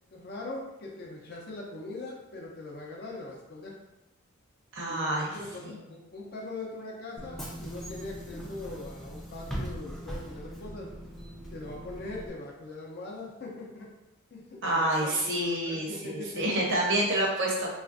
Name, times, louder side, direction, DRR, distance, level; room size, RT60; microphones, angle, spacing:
voice 1, 0.1-3.8 4.9-10.9 11.5-13.9 14.3-16.4, left 2 dB, 50° left, -2 dB, 0.6 m, -41 dB
voice 2, 4.7-5.4 14.6-17.7, right 1 dB, 60° right, -3 dB, 0.8 m, -28 dB
Bus / Engine, 7.2-12.3, equal, ahead, 0.4 m, -40 dB
3.2 x 2.4 x 2.5 m, 0.97 s
head